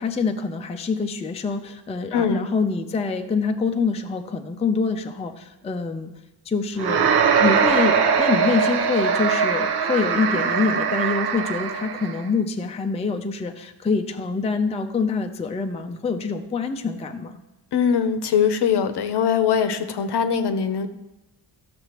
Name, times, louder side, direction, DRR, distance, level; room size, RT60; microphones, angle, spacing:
voice 1, 0.0-6.1 6.5-17.4, left 4 dB, 15° left, 5 dB, 0.4 m, -25 dB
voice 2, 2.1-2.5 17.7-20.9, left 7 dB, 65° left, 9 dB, 0.8 m, -21 dB
sound 1, 6.8-12.2, right 6 dB, 60° right, 0.8 m, -21 dB
12.0 x 6.7 x 2.9 m, 0.98 s
wide cardioid pair, 125°, 44 cm